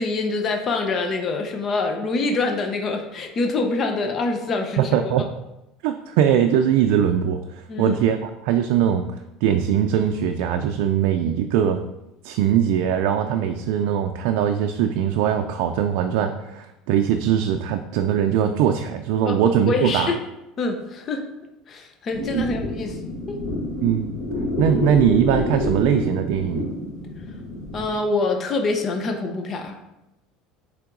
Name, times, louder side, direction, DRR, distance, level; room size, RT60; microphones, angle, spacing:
voice 1, 0.0-4.8 7.7-8.0 19.2-19.4 19.7-20.2 20.6-21.2 21.7-23.0 23.3-23.4 27.7-29.8, left 3 dB, 30° left, 3 dB, 0.7 m, -25 dB
voice 2, 4.8-5.3 5.8-11.8 12.2-20.1 22.2-22.5 23.8-24.1 24.6-26.7, right 9 dB, 70° right, 5 dB, 0.4 m, -21 dB
sound 1, 22.1-28.0, left 1 dB, 75° left, 1.9 m, -28 dB
7.5 x 3.5 x 3.9 m, 0.93 s
cardioid pair, 155°, 0 cm